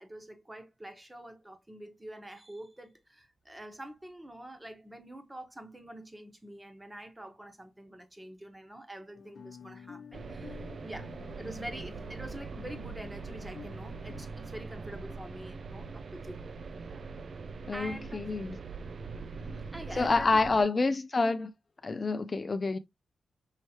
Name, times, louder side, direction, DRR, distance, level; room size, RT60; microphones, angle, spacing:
voice 1, 0.0-11.1 11.4-16.4 16.8-17.0 17.7-18.3 19.4-20.7, right 1 dB, 15° right, 1.2 m, -46 dB
Guitar, 9.1-14.3, left 5 dB, 60° left, 0.9 m, -50 dB
sound 1, 10.1-20.6, right 4 dB, 60° right, 0.4 m, -42 dB
voice 2, 17.7-18.6 20.0-21.5 21.8-22.8, left 3 dB, 40° left, 0.4 m, -28 dB
5.6 x 3.1 x 2.9 m
cardioid pair, 65°, 0 cm